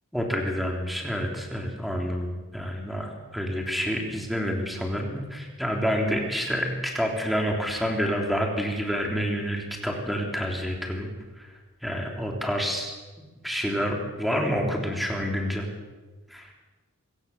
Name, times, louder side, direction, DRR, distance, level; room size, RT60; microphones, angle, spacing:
voice 1, 0.1-11.1 11.4-11.5 11.8-13.0 13.4-15.7 16.3-16.5, equal, ahead, 1 dB, 3.6 m, -28 dB
25.0 x 16.5 x 7.3 m, 1.3 s
head